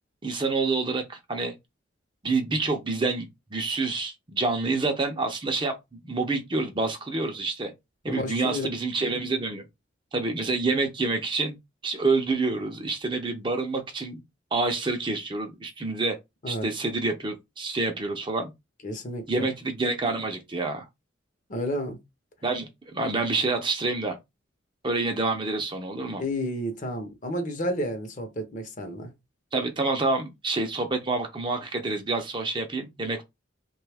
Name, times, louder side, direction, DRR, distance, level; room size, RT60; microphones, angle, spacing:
voice 1, 0.2-1.5 2.2-7.7 8.0-9.6 10.1-11.6 11.8-14.2 14.5-16.2 16.5-18.5 19.3-20.9 22.4-24.2 24.8-26.2 29.5-33.2, right 3 dB, 25° right, 0.5 m, -27 dB
voice 2, 8.1-8.7 16.4-16.7 18.8-19.5 21.5-22.0 26.2-29.1, equal, 40° left, 0.7 m, -31 dB
3.1 x 2.3 x 3.3 m
head